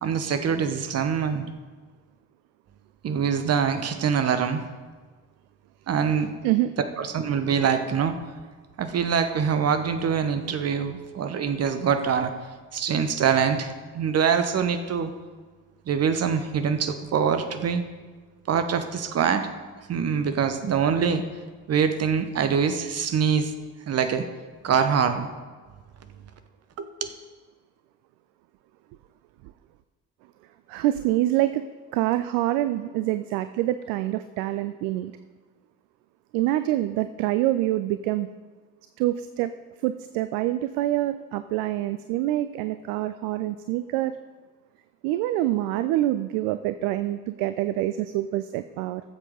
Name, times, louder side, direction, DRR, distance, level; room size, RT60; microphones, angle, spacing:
voice 1, 0.0-1.5 3.0-4.6 5.9-6.3 7.0-8.1 8.8-12.3 12.7-15.1 15.9-17.8 18.5-19.5 19.9-21.2 21.7-23.5 23.9-24.2 24.6-25.3 26.8-27.1, right 7 dB, 30° right, 8 dB, 1.1 m, -24 dB
voice 2, 30.7-31.6 31.9-35.1 36.3-38.3 39.0-39.5 39.8-44.1 45.0-49.0, right 14 dB, 50° right, 12 dB, 0.5 m, -26 dB
18.0 x 7.5 x 3.8 m, 1.4 s
figure-of-eight pair, 55°, 46 cm